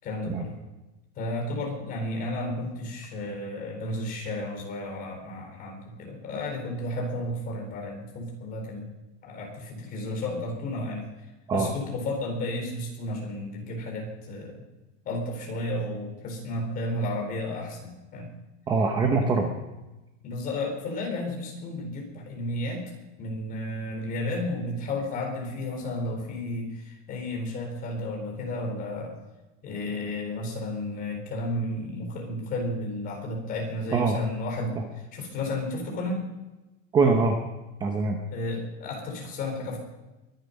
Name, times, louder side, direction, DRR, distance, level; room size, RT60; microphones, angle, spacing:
voice 1, 0.0-0.6 1.2-8.9 9.2-11.1 11.5-14.6 15.0-18.3 20.2-22.8 23.2-29.1 29.6-36.2 38.3-39.8, left 1 dB, 25° left, 1 dB, 4.2 m, -32 dB
voice 2, 18.7-19.5 33.9-34.2 34.8-34.9 36.9-37.4 37.8-38.2, right 4 dB, 10° right, 3 dB, 0.8 m, -23 dB
22.5 x 10.5 x 5.3 m, 1.1 s
supercardioid pair, 175°, 37 cm